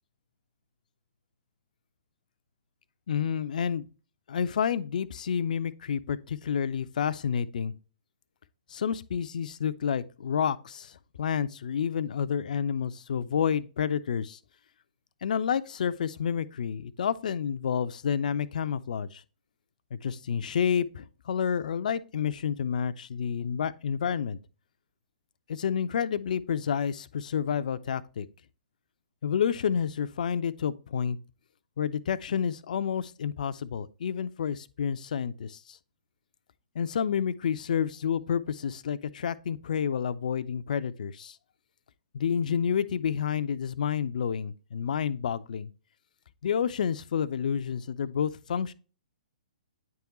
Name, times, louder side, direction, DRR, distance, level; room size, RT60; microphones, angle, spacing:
voice 1, 3.1-3.8 4.3-7.7 8.7-10.9 11.2-14.4 15.2-19.2 19.9-24.4 25.5-28.3 29.2-31.2 31.8-35.8 36.8-41.4 42.1-45.7 46.4-48.7, left 7 dB, 60° left, 0.4 m, -29 dB
9.0 x 3.6 x 3.0 m
figure-of-eight pair, 130°, 5 cm